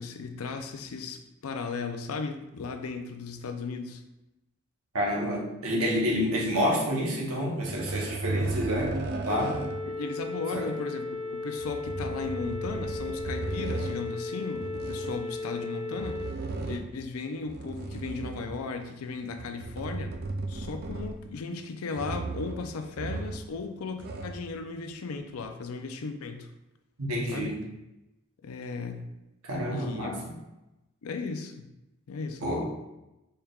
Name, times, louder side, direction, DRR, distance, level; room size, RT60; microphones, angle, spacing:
voice 1, 0.0-4.0 9.8-16.2 16.7-20.2 20.5-26.5 27.3-27.5 28.4-29.1 29.7-30.1 31.0-31.7 32.1-32.6, left 4 dB, 90° left, 7 dB, 0.4 m, -36 dB
voice 2, 4.9-9.0 9.2-9.6 10.5-10.7 27.0-27.6 29.4-30.4 32.4-32.6, equal, 85° right, -2 dB, 0.9 m, -28 dB
sound 1, 7.6-9.9 11.6-14.0 14.5-15.2 15.9-17.0 17.4-18.7 19.3-21.4 21.9-22.6 23.0-23.5 23.8-24.5 25.4-25.5, right 3 dB, 45° right, 0.3 m, -35 dB
sound 2, 9.3-16.3, left 3 dB, 40° left, 1.2 m, -36 dB
4.3 x 3.4 x 2.3 m, 0.96 s
head